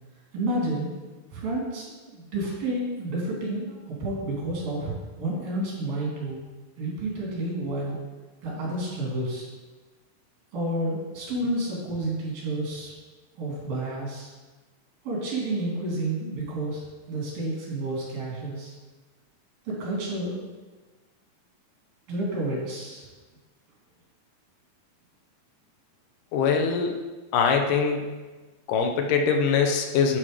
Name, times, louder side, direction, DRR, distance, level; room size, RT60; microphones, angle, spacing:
voice 1, 0.3-0.9 1.3-6.4 6.8-8.0 8.4-9.5 10.5-12.9 13.4-14.3 15.0-18.7 19.6-20.4 22.1-23.1, right 1 dB, 80° right, -4 dB, 4.5 m, -30 dB
voice 2, 26.3-27.0 27.3-28.1 28.7-30.2, left 6 dB, 75° left, 3 dB, 2.3 m, -23 dB
11.0 x 4.5 x 5.0 m, 1.3 s
omnidirectional pair, 4.0 m